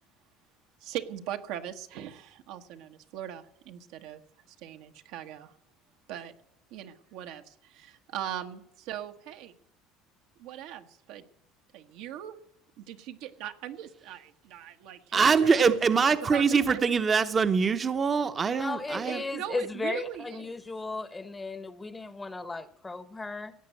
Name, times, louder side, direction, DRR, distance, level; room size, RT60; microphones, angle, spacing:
voice 1, 0.8-4.2 4.6-5.5 6.1-6.3 6.7-9.5 10.4-11.2 11.7-12.4 12.8-15.7 16.0-16.9 19.0-20.5, right 11 dB, 75° right, 1.3 m, -40 dB
voice 2, 15.1-19.2, right 5 dB, 30° right, 0.9 m, -24 dB
voice 3, 18.5-23.5, left 3 dB, 15° left, 0.9 m, -35 dB
17.5 x 8.1 x 7.8 m
supercardioid pair, 120°, 0 cm